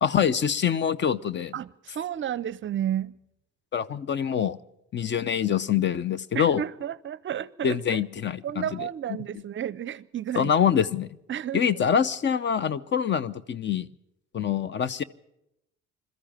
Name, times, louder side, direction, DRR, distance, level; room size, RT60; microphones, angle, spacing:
voice 1, 0.0-1.5 3.7-4.6 4.9-6.6 7.6-8.8 10.4-11.1 11.5-13.9 14.3-15.0, left 8 dB, 40° left, 0.7 m, -25 dB
voice 2, 1.5-3.1 6.3-8.0 8.4-10.5 11.3-11.6, right 10 dB, 40° right, 0.6 m, -32 dB
21.5 x 14.0 x 9.0 m
cardioid pair, 100°, 30 cm